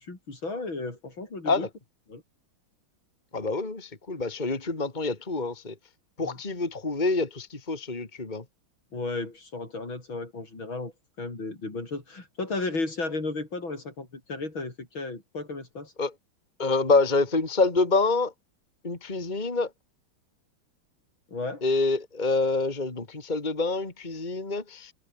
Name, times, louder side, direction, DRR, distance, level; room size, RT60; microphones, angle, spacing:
voice 1, 0.0-1.7 2.1-2.2 6.2-6.4 8.9-10.9 11.2-15.9 21.3-21.6, left 3 dB, 70° left, 6.5 m, -34 dB
voice 2, 3.3-5.7 6.2-8.4 16.0-16.1 16.6-18.3 18.8-19.7 21.6-24.9, left 3 dB, 20° left, 2.7 m, -26 dB
omnidirectional pair, 2.3 m